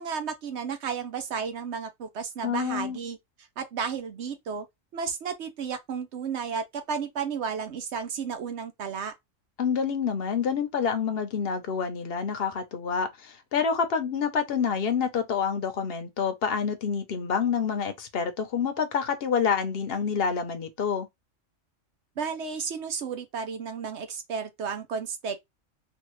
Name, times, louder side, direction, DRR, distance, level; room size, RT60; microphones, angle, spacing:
voice 1, 0.0-4.7 4.9-9.1 22.2-25.5, right 6 dB, 65° right, 0.9 m, -33 dB
voice 2, 2.4-3.0 9.6-21.1, left 6 dB, 55° left, 0.9 m, -27 dB
3.5 x 2.4 x 3.1 m
omnidirectional pair, 1.3 m